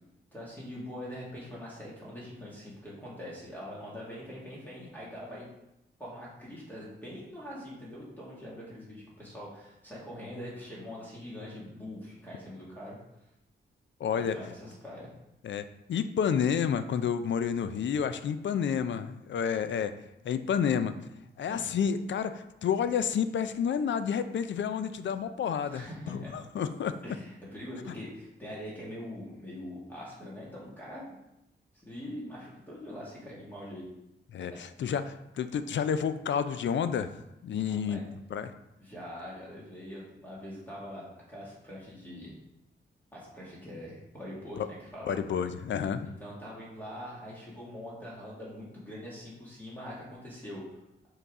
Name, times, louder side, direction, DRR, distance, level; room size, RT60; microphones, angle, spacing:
voice 1, 0.3-5.5 6.0-13.0 14.2-15.1 21.5-21.7 25.7-26.3 27.0-31.1 31.7-33.8 34.5-34.6 37.7-38.0 38.8-42.3 43.1-45.1 46.0-50.7, equal, 10° left, -7 dB, 1.9 m, -43 dB
voice 2, 14.0-14.3 15.4-19.9 20.2-20.9 21.4-26.9 34.3-37.1 37.4-38.0 38.3-38.5 44.6-44.7 45.1-46.1, left 7 dB, 70° left, 11 dB, 0.4 m, -30 dB
6.9 x 3.9 x 3.6 m, 0.89 s
wide cardioid pair, 110°, 20 cm